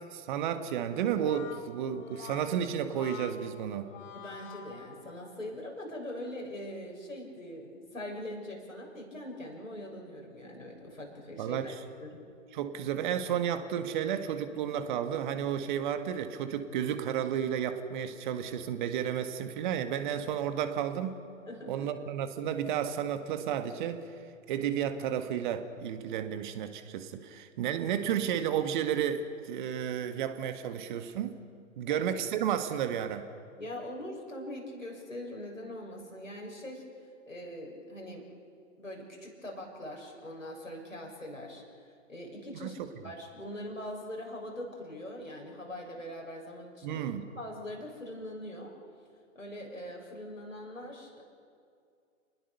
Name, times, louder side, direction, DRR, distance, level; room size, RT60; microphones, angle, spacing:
voice 1, 0.1-3.9 11.4-11.8 12.5-21.1 21.7-24.0 24.5-31.4 31.8-33.2 42.6-42.9 46.8-47.3, right 9 dB, 40° right, 8 dB, 1.8 m, -32 dB
Brass instrument, 1.0-5.5, left 9 dB, 30° left, 4.6 m, -47 dB
voice 2, 4.1-11.7 12.0-12.2 21.5-21.9 31.9-32.0 33.6-36.8 37.3-38.3 38.8-42.7 43.0-47.0 47.3-48.7 49.3-51.2, left 1 dB, 85° left, -1 dB, 7.4 m, -42 dB
29.5 x 20.0 x 6.9 m, 2.3 s
figure-of-eight pair, 115°, 38 cm